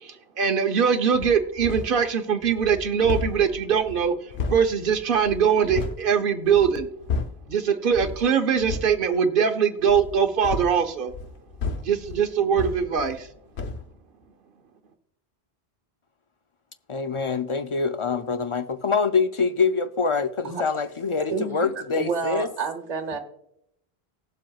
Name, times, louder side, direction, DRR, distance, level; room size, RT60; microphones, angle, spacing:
voice 1, 0.0-4.1 4.5-6.9 7.5-11.1 11.8-13.3, right 7 dB, 60° right, 1.0 m, -22 dB
sound 1, 1.1-2.1 2.4-6.1 6.4-7.5 7.9-8.3 8.6-9.0 9.8-13.3 13.6-13.9, left 4 dB, 90° left, 1.1 m, -33 dB
voice 2, 16.9-22.5, left 5 dB, 50° left, 0.4 m, -25 dB
voice 3, 21.2-23.2, right 5 dB, 40° right, 1.2 m, -29 dB
19.0 x 7.4 x 2.3 m
omnidirectional pair, 1.0 m